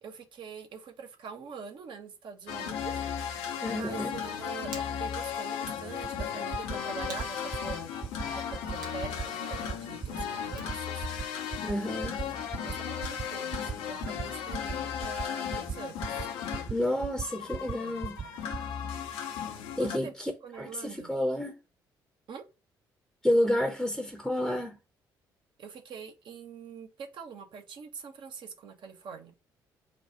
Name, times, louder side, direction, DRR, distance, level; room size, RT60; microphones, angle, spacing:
voice 1, 0.0-3.0 3.7-11.1 11.9-12.1 12.6-16.7 17.5-18.4 18.8-19.5 19.8-20.1 20.4-21.1 22.3-22.4 25.6-29.3, right 6 dB, 50° right, 0.9 m, -44 dB
sound 1, 2.5-20.0, left 8 dB, 60° left, 0.7 m, -36 dB
voice 2, 3.6-4.1 11.6-12.2 16.7-18.2 19.8-20.3 20.6-21.5 23.2-24.8, left 1 dB, ahead, 0.8 m, -29 dB
Hands, 4.1-11.0, right 3 dB, 80° right, 0.9 m, -52 dB
sound 2, 6.0-6.2 6.5-6.8 7.0-7.3 7.5-7.7 8.0-8.2 8.5-8.7 9.0-9.2 9.5-9.7 10.0-10.2 10.5-10.7 11.0-11.2 11.5-11.7 12.0-12.2 12.5-12.7 13.0-13.2 13.5-13.7 14.0-14.2 14.5-14.7 15.0-15.2 15.5-15.7 16.0-16.2 16.5-16.7 17.0-17.2 17.5-17.7 18.0-18.2 18.5-18.7, right 7 dB, 25° right, 0.4 m, -35 dB
4.3 x 2.3 x 4.3 m
figure-of-eight pair, 45°, 11 cm